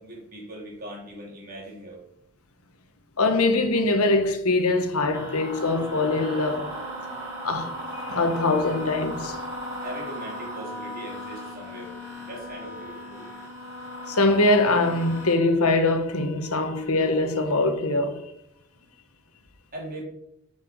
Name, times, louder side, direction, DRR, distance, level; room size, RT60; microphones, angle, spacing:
voice 1, 0.0-2.0 9.8-11.9 12.2-13.3 19.7-20.0, right 1 dB, 40° right, 3.3 m, -40 dB
voice 2, 3.2-6.7 7.4-9.4 14.1-18.2, left 2 dB, 80° left, 1.4 m, -23 dB
sound 1, 5.1-15.3, equal, 15° right, 4.1 m, -37 dB
10.5 x 6.1 x 4.7 m
head